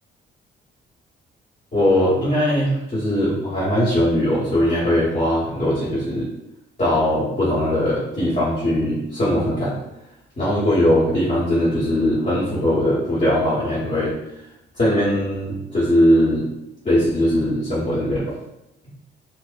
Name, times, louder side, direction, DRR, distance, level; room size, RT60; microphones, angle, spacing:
voice 1, 1.7-6.3 6.8-9.7 10.4-14.1 14.8-16.4 16.8-18.3, equal, 40° left, -10 dB, 1.3 m, -20 dB
4.4 x 2.1 x 2.5 m, 0.87 s
cardioid pair, 90°, 20 cm